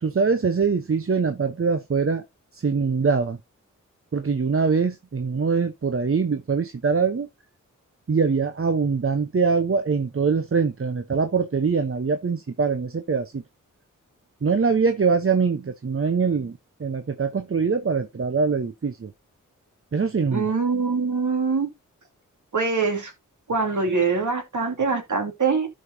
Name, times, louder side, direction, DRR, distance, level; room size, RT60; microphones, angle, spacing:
voice 1, 0.0-2.2 2.5-3.4 4.1-7.3 8.1-13.4 14.4-19.1 19.9-20.5, right 5 dB, 40° right, 1.0 m, -23 dB
voice 2, 20.3-21.7 22.5-23.1 23.5-25.7, right 4 dB, 65° right, 2.6 m, -23 dB
12.5 x 5.2 x 2.8 m
cardioid pair, 45°, 32 cm